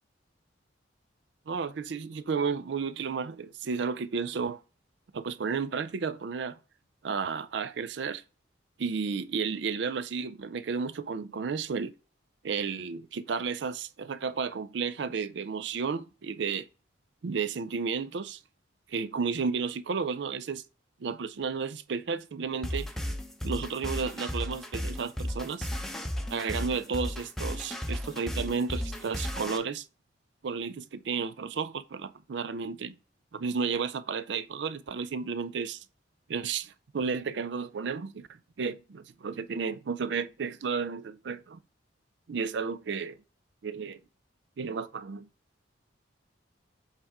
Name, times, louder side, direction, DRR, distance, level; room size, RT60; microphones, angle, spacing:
voice 1, 1.5-4.6 5.1-6.6 7.0-8.2 8.8-11.9 12.4-16.7 17.2-18.4 18.9-20.6 21.0-22.9 23.4-25.7 26.3-29.9 30.4-33.0 33.3-35.8 36.3-38.3 38.6-41.6 42.3-43.2 43.6-44.0 44.6-45.3, right 5 dB, 65° right, 0.4 m, -32 dB
sound 1, 22.6-29.6, equal, ahead, 0.7 m, -34 dB
8.1 x 3.5 x 3.5 m
head